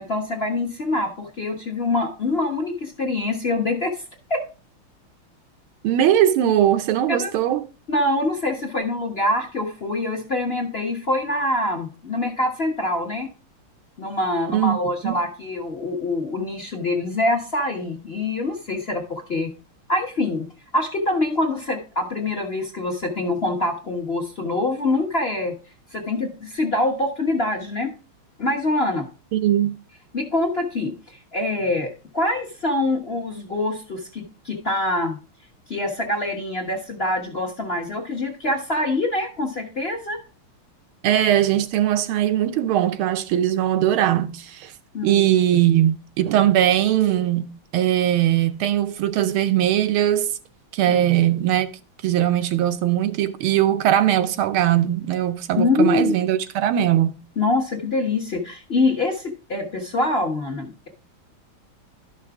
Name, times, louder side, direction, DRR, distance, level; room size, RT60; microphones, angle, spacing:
voice 1, 0.0-3.9 4.3-4.4 7.1-7.3 7.9-13.3 14.0-19.5 19.9-20.5 20.7-25.6 25.9-27.9 28.4-29.1 30.1-35.2 35.7-40.2 44.9-45.2 50.9-51.0 55.6-56.2 57.4-60.9, left 2 dB, 35° left, 1.1 m, -25 dB
voice 2, 5.8-7.7 14.5-14.8 15.0-15.2 29.3-29.7 41.0-44.7 45.0-47.5 47.7-50.3 50.7-51.7 52.0-57.1, right 11 dB, 80° right, 1.5 m, -20 dB
12.0 x 5.9 x 3.5 m
omnidirectional pair, 2.4 m